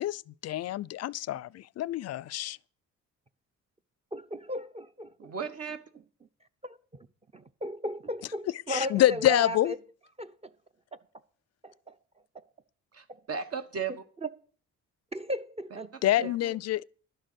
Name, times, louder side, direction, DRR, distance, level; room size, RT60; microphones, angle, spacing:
voice 1, 0.0-2.6 8.7-9.7 16.0-16.8, left 14 dB, 55° left, 0.5 m, -27 dB
voice 2, 4.1-5.3 6.6-7.1 7.3-9.8 10.2-10.5 11.6-12.0 13.1-13.2 15.1-15.9 16.2-16.3, equal, 20° right, 0.7 m, -36 dB
voice 3, 5.2-5.8 12.9-14.0 15.7-15.8 16.2-16.5, right 6 dB, 50° right, 1.2 m, -36 dB
11.5 x 6.6 x 7.8 m
cardioid pair, 90°, 30 cm